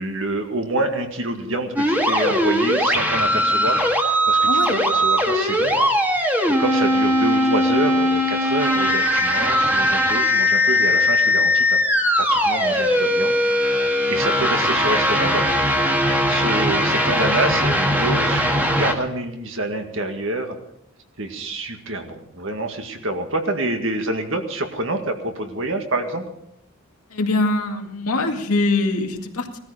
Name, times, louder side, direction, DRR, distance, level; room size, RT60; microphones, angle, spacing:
voice 1, 0.0-6.1 6.5-11.8 12.2-13.3 14.1-15.5 16.2-20.6 21.2-26.2, right 2 dB, 60° right, 5 dB, 2.0 m, -27 dB
sound 1, 1.8-18.9, equal, 10° right, 1.7 m, -19 dB
voice 2, 4.5-4.8 27.1-29.6, left 2 dB, 80° left, 3 dB, 2.2 m, -23 dB
19.0 x 13.5 x 5.1 m, 0.79 s
head